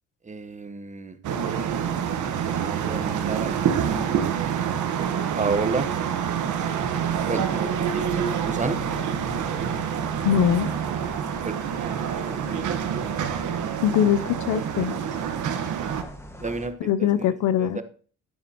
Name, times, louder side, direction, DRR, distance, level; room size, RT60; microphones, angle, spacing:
voice 1, 0.2-1.2 2.4-4.2 5.3-5.9 7.3-8.8 11.4-12.0 12.2-13.0 16.4-17.3 17.6-17.8, right 4 dB, 25° right, 1.1 m, -31 dB
sound 1, 1.2-16.0, right 8 dB, 75° right, 1.3 m, -27 dB
sound 2, 6.3-16.7, equal, 10° left, 1.6 m, -42 dB
voice 2, 10.2-10.7 13.8-15.0 16.8-17.8, left 9 dB, 80° left, 0.6 m, -22 dB
10.5 x 9.3 x 2.9 m
cardioid pair, 90°, 30 cm